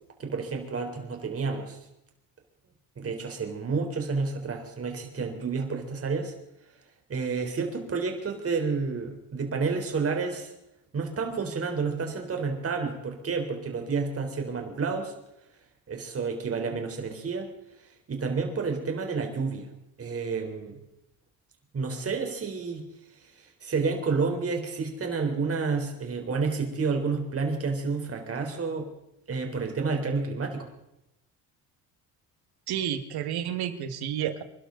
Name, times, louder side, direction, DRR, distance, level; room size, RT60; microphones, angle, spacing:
voice 1, 0.2-1.8 3.0-6.3 7.1-10.5 10.9-15.1 15.9-17.5 18.1-19.7 20.0-20.8 21.7-22.8 23.4-28.9 29.3-30.7, right 4 dB, 35° right, 3 dB, 3.8 m, -30 dB
voice 2, 32.7-34.4, right 10 dB, 70° right, 9 dB, 2.0 m, -30 dB
27.0 x 12.0 x 3.9 m, 0.86 s
cardioid pair, 110°, 40 cm